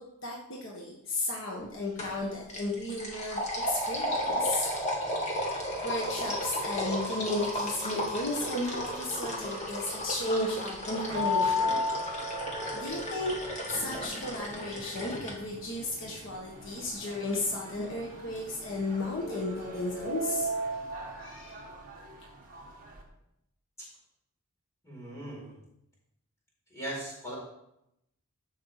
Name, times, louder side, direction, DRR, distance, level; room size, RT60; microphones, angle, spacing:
voice 1, 0.0-4.7 5.8-11.8 12.7-13.4 13.7-20.5 21.2-21.7, left 2 dB, 55° left, -2 dB, 1.5 m, -34 dB
sound 1, 2.0-2.2 2.5-15.3, equal, 30° left, 2.3 m, -34 dB
sound 2, 11.1-23.0, left 2 dB, 40° right, 2.1 m, -36 dB
voice 2, 24.8-25.6 26.7-27.3, right 1 dB, 15° left, -5 dB, 4.7 m, -39 dB
14.5 x 5.8 x 5.0 m, 0.83 s
head